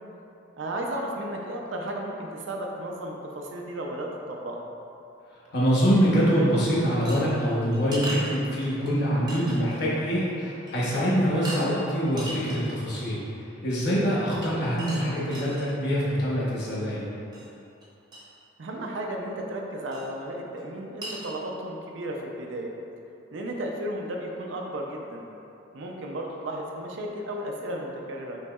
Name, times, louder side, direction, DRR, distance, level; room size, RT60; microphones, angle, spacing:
voice 1, 0.6-4.7 18.6-22.7 23.3-25.2 25.7-28.4, right 1 dB, 80° right, 0 dB, 0.5 m, -34 dB
voice 2, 5.5-13.2 13.6-17.1, equal, 60° left, -7 dB, 1.0 m, -24 dB
sound 1, 7.1-8.9 9.3-9.8 10.2-10.3 10.7-10.9 11.4-11.7 12.1-13.2 14.4-15.7 17.3-17.5 17.8-17.9 18.1-18.2 19.9-20.1 20.6-20.7 21.0-21.3, right 1 dB, 20° right, 0.8 m, -38 dB
5.4 x 3.1 x 2.3 m, 2.8 s
head